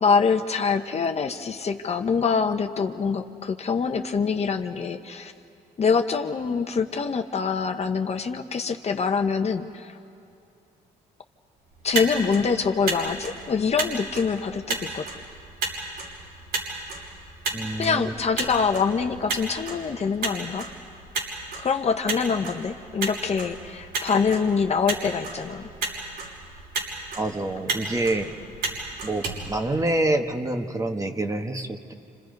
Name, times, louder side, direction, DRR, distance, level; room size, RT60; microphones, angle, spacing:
voice 1, 0.0-5.3 5.8-9.9 11.8-15.1 17.8-20.7 21.6-25.6, left 5 dB, 40° left, 6 dB, 1.1 m, -25 dB
Motor vehicle (road), 11.7-30.3, right 3 dB, 80° right, 6.0 m, -34 dB
voice 2, 17.5-18.1 27.1-28.3 29.0-31.9, right 2 dB, 20° right, 5 dB, 1.6 m, -27 dB
28.5 x 28.0 x 5.4 m, 2.6 s
cardioid pair, 95°, 16 cm